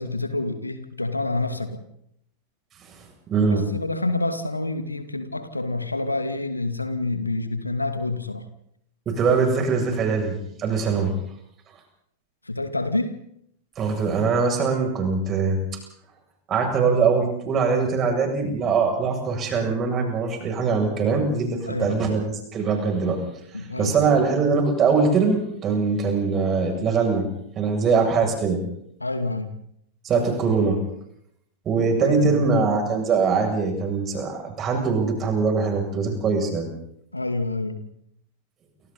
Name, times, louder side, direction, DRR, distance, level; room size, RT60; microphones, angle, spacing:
voice 1, 0.0-1.8 3.5-8.4 12.5-13.1 21.6-21.9 23.5-24.2 29.0-29.5 31.9-32.7 37.1-37.9, left 2 dB, 85° left, 9 dB, 2.4 m, -28 dB
voice 2, 3.3-3.6 9.1-10.3 10.6-11.1 13.8-15.6 16.5-23.2 23.6-27.2 27.6-28.6 30.0-30.8 31.7-36.7, right 5 dB, 30° right, 3 dB, 7.5 m, -22 dB
29.0 x 26.0 x 4.2 m, 0.71 s
figure-of-eight pair, 90°, 0 cm